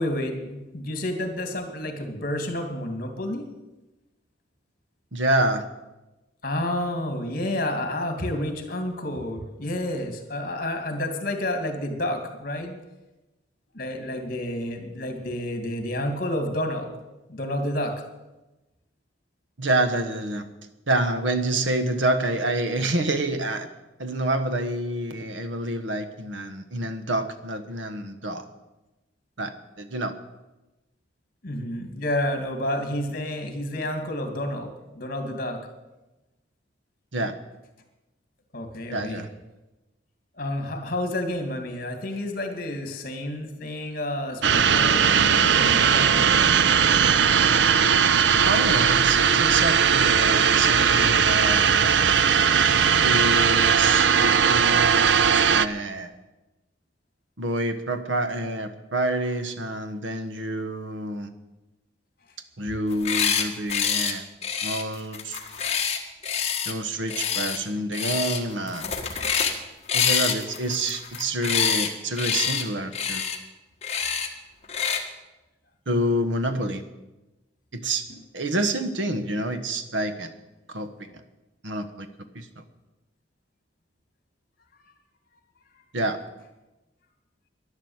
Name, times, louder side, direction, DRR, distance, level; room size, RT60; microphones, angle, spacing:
voice 1, 0.0-3.5 6.4-12.8 13.7-16.9 17.3-18.0 31.4-35.6 38.5-39.2 40.4-46.5 78.1-78.2, left 1 dB, 50° left, 6 dB, 2.3 m, -30 dB
voice 2, 5.1-5.6 19.6-20.5 20.9-23.7 24.0-28.5 29.4-30.1 37.1-37.4 38.9-39.3 48.5-52.2 53.0-56.1 57.4-61.3 62.6-64.2 64.6-65.4 66.6-68.9 69.9-73.3 75.9-76.8 77.7-78.0 78.3-80.3 80.7-81.2 81.6-82.1 82.3-82.5 85.9-86.2, right 1 dB, 85° right, 10 dB, 1.2 m, -27 dB
sound 1, 44.4-55.7, right 7 dB, 70° right, 0.5 m, -19 dB
sound 2, 62.9-63.4 63.7-64.1 64.4-66.7 67.1-67.6 67.9-68.4 68.7-69.6 69.9-71.9 72.2-72.6 72.9-73.4 73.8-74.3 74.7-75.0, left 7 dB, 35° left, 1.6 m, -26 dB
11.5 x 11.0 x 8.0 m, 1.0 s
head